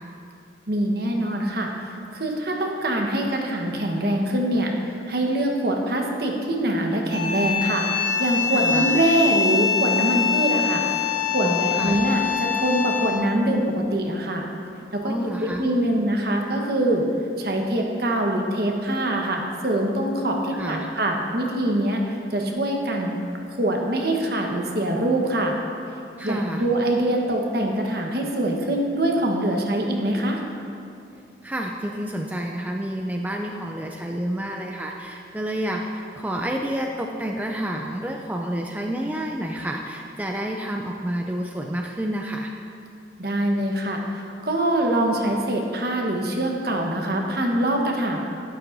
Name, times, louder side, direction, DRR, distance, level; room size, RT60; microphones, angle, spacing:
voice 1, 0.7-1.7 2.1-14.4 14.9-15.1 15.4-17.0 17.4-22.0 22.3-23.2 23.6-25.6 26.2-30.4 43.2-48.2, right 1 dB, 55° right, 1 dB, 1.2 m, -24 dB
sound 1, 7.1-13.3, left 8 dB, 35° left, 1.8 m, -24 dB
voice 2, 8.5-8.9 11.4-12.0 15.0-15.7 20.5-20.9 26.2-26.6 31.4-42.5, right 1 dB, 10° right, 1 dB, 0.4 m, -29 dB
12.0 x 11.5 x 2.7 m, 2.6 s
head